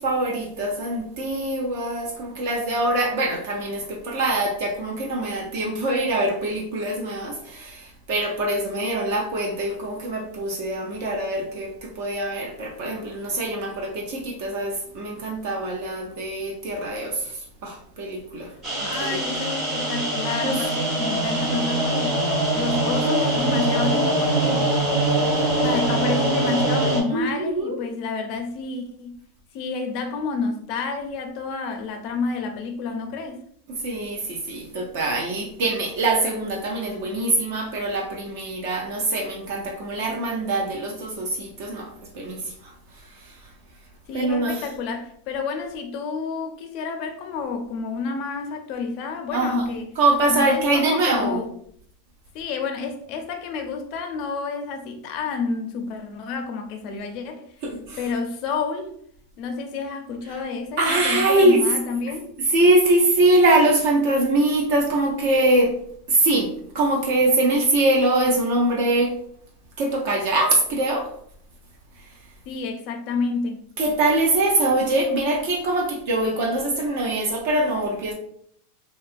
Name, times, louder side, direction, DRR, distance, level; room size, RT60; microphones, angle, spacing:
voice 1, 0.0-18.5 18.8-19.2 20.4-20.6 27.1-27.8 33.7-42.7 43.2-43.4 44.1-44.6 49.3-49.7 50.0-51.4 57.6-58.0 60.8-61.7 62.5-65.8 66.1-69.2 69.8-71.1 73.8-78.1, right 2 dB, 50° right, 0.5 m, -23 dB
sound 1, 18.6-27.0, right 1 dB, 20° right, 0.8 m, -23 dB
voice 2, 18.8-22.2 22.6-24.7 25.6-29.1 29.5-33.4 44.1-49.9 50.3-51.5 52.3-57.6 58.0-58.9 59.4-62.4 72.5-73.6, left 4 dB, 35° left, 0.4 m, -29 dB
2.7 x 2.3 x 2.5 m
supercardioid pair, 170°, 0 cm